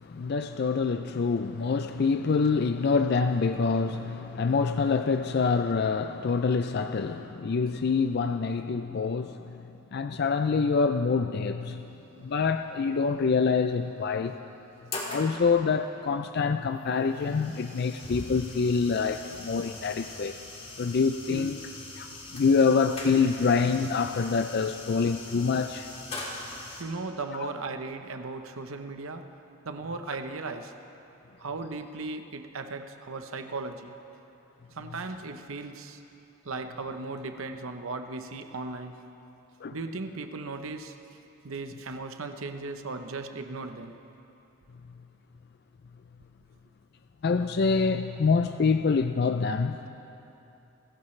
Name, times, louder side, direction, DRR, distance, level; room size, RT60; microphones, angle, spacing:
voice 1, 0.0-9.6 9.9-11.9 12.2-14.3 15.1-20.3 20.8-21.6 22.0-25.9 39.6-39.8 47.2-49.8, left 5 dB, 50° left, 8 dB, 0.4 m, -26 dB
sound 1, 11.8-12.1 13.3-13.4 13.9-14.0 14.5-15.3 16.4-26.8, left 2 dB, 30° left, 2.0 m, -41 dB
voice 2, 26.8-29.3 29.6-30.7 31.4-34.0 34.7-36.0 36.4-38.9 39.7-41.0 41.4-43.9, right 3 dB, 70° right, 7 dB, 0.8 m, -37 dB
28.0 x 15.5 x 3.2 m, 2.9 s
head